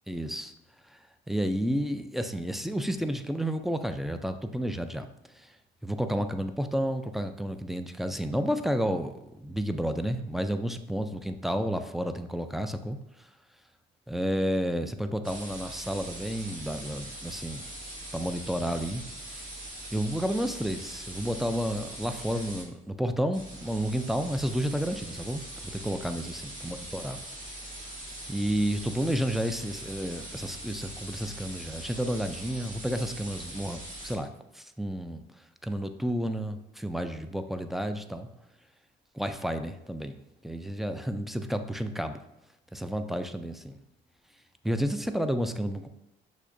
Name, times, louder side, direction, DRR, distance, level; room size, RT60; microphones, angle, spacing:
voice 1, 0.1-0.5 1.3-5.1 5.4-5.5 5.8-13.0 14.1-17.7 18.1-19.4 19.9-27.2 28.3-34.3 34.5-35.2 35.6-38.3 39.1-40.2 40.4-42.2 42.7-43.8 44.6-45.9, equal, ahead, 8 dB, 0.3 m, -31 dB
sound 1, 15.2-22.7 23.3-34.1, right 1 dB, 40° right, 1.6 m, -42 dB
6.2 x 2.8 x 2.6 m, 0.87 s
cardioid pair, 90°, 20 cm